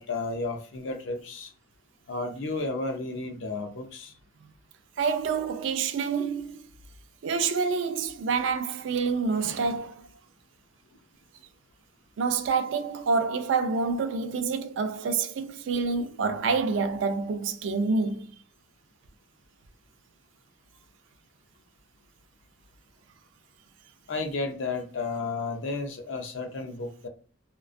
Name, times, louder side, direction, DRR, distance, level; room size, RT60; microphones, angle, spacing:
voice 1, 0.0-1.5 2.1-4.1 24.1-27.1, left 3 dB, 70° left, 0.5 m, -32 dB
voice 2, 5.0-6.6 7.2-10.0 12.2-18.3, right 5 dB, 70° right, 0.3 m, -27 dB
2.4 x 2.2 x 2.4 m
head